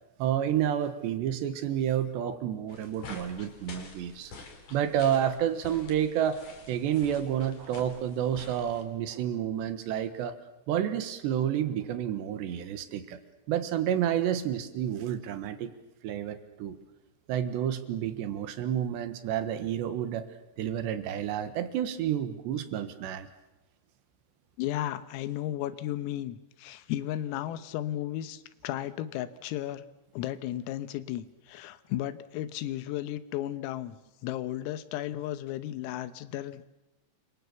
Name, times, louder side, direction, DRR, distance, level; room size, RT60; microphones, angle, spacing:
voice 1, 0.2-4.3 4.7-10.4 10.7-13.2 13.5-15.7 16.0-16.8 17.3-20.3 20.6-23.3, right 10 dB, 70° right, 11 dB, 3.3 m, -30 dB
sound 1, 2.7-8.8, left 4 dB, 35° left, 4.0 m, -48 dB
voice 2, 24.6-29.9 30.1-34.0 34.2-36.6, left 13 dB, 90° left, 14 dB, 3.8 m, -34 dB
29.0 x 24.5 x 7.0 m, 0.94 s
omnidirectional pair, 5.9 m